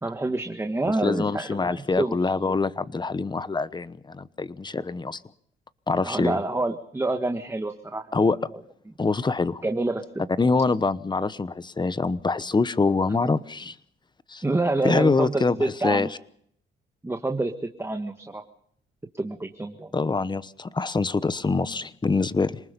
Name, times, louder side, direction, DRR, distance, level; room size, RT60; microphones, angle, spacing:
voice 1, 0.0-2.3 6.0-8.0 8.5-8.6 9.6-10.2 13.1-13.4 14.4-16.1 17.0-18.4 19.1-19.9, right 2 dB, 15° right, 5 dB, 1.7 m, -28 dB
voice 2, 1.0-5.2 5.9-6.4 8.1-8.4 9.0-9.6 10.4-13.7 14.3-14.4 14.8-16.1 19.9-22.6, left 4 dB, 20° left, 16 dB, 1.0 m, -25 dB
27.0 x 19.5 x 5.3 m, 0.66 s
cardioid pair, 90°, 20 cm